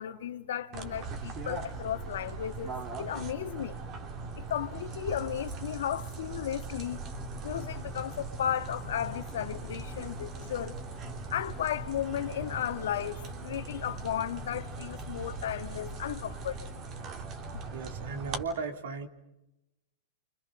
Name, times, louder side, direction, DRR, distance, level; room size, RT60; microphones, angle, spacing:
voice 1, 0.0-3.8 4.4-7.0 7.4-10.8 11.3-16.7 17.5-17.6, left 10 dB, 75° left, 1.5 m, -35 dB
sound 1, 0.7-18.4, right 4 dB, 40° right, 3.3 m, -40 dB
sound 2, 6.9-16.8, left 11 dB, 20° left, 2.6 m, -49 dB
voice 2, 17.7-19.1, right 4 dB, 70° right, 3.3 m, -36 dB
29.5 x 26.0 x 6.6 m
hypercardioid pair, 115°, 0 cm